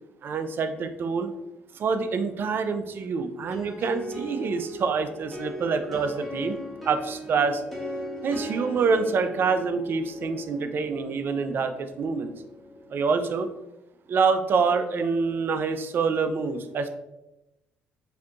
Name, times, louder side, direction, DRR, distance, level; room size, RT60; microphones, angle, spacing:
voice 1, 0.2-1.3 1.7-6.6 6.9-7.6 8.2-12.3 12.9-13.5 14.1-17.0, right 5 dB, 50° right, 9 dB, 0.4 m, -26 dB
sound 1, 3.5-13.1, equal, ahead, 1.3 m, -39 dB
4.9 x 2.7 x 2.4 m, 0.95 s
supercardioid pair, 70°, 5 cm